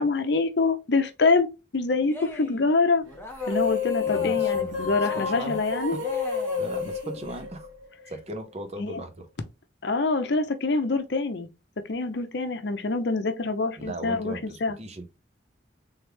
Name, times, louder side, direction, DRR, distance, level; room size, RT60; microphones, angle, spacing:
voice 1, 0.0-1.5 1.7-3.0 3.5-6.0 8.8-9.0 9.8-11.5 11.9-14.8, left 3 dB, 55° left, 0.6 m, -25 dB
Cheering, 2.0-2.7 3.0-3.7 4.0-4.7 5.0-6.8, left 2 dB, 10° left, 0.6 m, -40 dB
sound 1, 3.3-8.0, left 7 dB, 80° right, 1.6 m, -29 dB
voice 2, 4.1-5.6 5.9-6.0 6.6-7.7 8.1-9.3 13.8-15.1, right 1 dB, 35° right, 0.7 m, -38 dB
3.5 x 3.2 x 3.3 m
head